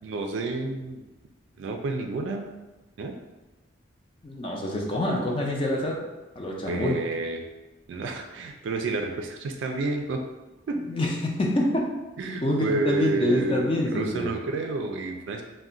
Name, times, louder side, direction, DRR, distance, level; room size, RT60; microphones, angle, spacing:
voice 1, 0.0-1.1 1.6-2.5 3.0-3.1 6.7-7.4 7.9-10.2 10.7-10.8 12.2-15.4, right 3 dB, 75° right, 3 dB, 0.3 m, -30 dB
voice 2, 4.2-6.0 6.4-7.0 10.8-11.9 12.4-14.3, left 1 dB, 30° left, -1 dB, 0.4 m, -26 dB
2.4 x 2.1 x 3.7 m, 1.1 s
head